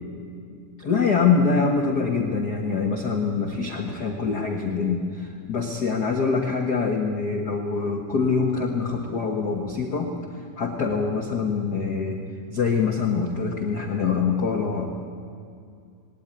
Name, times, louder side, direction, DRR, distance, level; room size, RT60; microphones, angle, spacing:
voice 1, 0.8-12.2 12.5-14.9, left 5 dB, 70° left, 3 dB, 0.9 m, -24 dB
20.0 x 18.0 x 10.0 m, 2.4 s
omnidirectional pair, 4.1 m